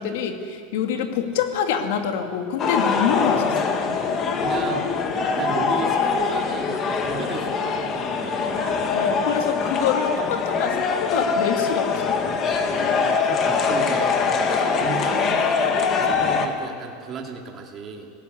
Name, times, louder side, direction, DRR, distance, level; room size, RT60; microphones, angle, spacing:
voice 1, 0.0-3.7 8.9-12.1, left 7 dB, 60° left, 5 dB, 2.6 m, -25 dB
sound 1, 2.6-16.5, left 5 dB, 25° left, 1.7 m, -23 dB
voice 2, 3.0-4.0 4.4-4.9 5.2-8.9 12.6-18.1, right 5 dB, 20° right, 1 dB, 2.5 m, -35 dB
26.5 x 18.0 x 8.1 m, 2.2 s
supercardioid pair, 175°, 0 cm